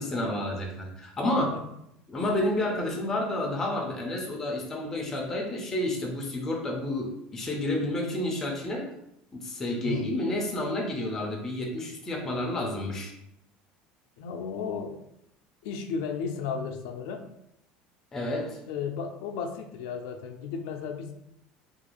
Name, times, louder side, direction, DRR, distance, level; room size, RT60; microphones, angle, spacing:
voice 1, 0.0-1.5 2.1-8.9 9.3-13.1 18.1-18.6, left 1 dB, 15° left, -1 dB, 0.4 m, -30 dB
voice 2, 14.2-15.0 15.6-17.2 18.7-21.1, left 6 dB, 85° left, 4 dB, 0.3 m, -34 dB
2.4 x 2.3 x 2.9 m, 0.80 s
cardioid pair, 180°, 3 cm